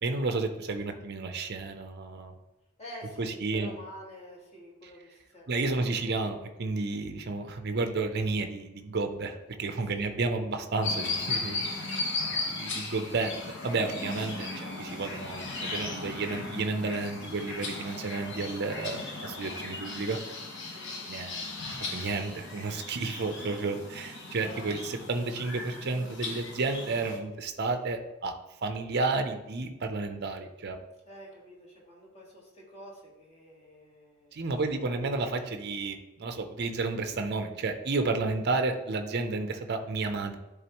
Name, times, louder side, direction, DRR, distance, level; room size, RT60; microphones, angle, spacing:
voice 1, 0.0-2.3 3.2-3.7 5.5-12.0 12.4-13.3 13.6-20.2 21.1-30.8 34.3-40.4, right 3 dB, 45° right, 7 dB, 0.6 m, -32 dB
voice 2, 2.8-6.2 9.8-10.1 20.6-21.0 31.1-34.8, equal, 30° left, -3 dB, 1.8 m, -48 dB
sound 1, 10.8-27.2, left 3 dB, 55° left, 1.1 m, -37 dB
10.5 x 3.6 x 3.0 m, 1.0 s
head